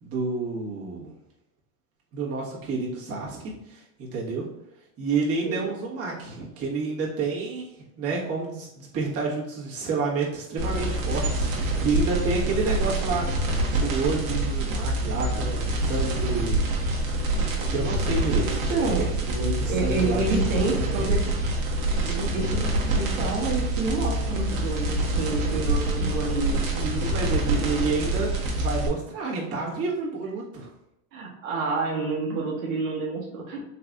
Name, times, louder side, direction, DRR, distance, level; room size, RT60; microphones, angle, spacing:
voice 1, 0.0-1.1 2.1-4.5 5.0-7.6 8.0-16.7 17.2-20.4 20.7-21.1 26.7-30.7, right 4 dB, 35° right, -4 dB, 1.4 m, -29 dB
sound 1, 10.6-28.9, right 1 dB, 50° right, 1.3 m, -26 dB
voice 2, 18.7-19.0 19.7-21.3 22.0-26.6 27.5-27.6 31.1-33.6, right 3 dB, 80° right, -1 dB, 1.1 m, -28 dB
3.9 x 3.2 x 2.4 m, 0.87 s
hypercardioid pair, 100°, 40 cm